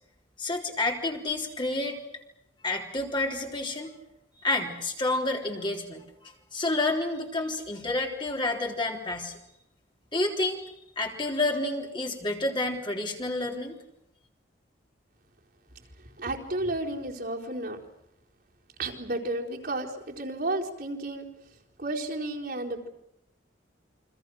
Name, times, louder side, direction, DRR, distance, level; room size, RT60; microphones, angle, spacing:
voice 1, 0.4-2.0 2.6-3.9 4.4-9.4 10.1-13.7, left 2 dB, 25° left, 1 dB, 3.8 m, -29 dB
voice 2, 16.2-17.8 18.8-21.3 21.8-22.9, right 2 dB, 55° right, -2 dB, 4.2 m, -32 dB
29.5 x 25.5 x 6.4 m, 0.82 s
head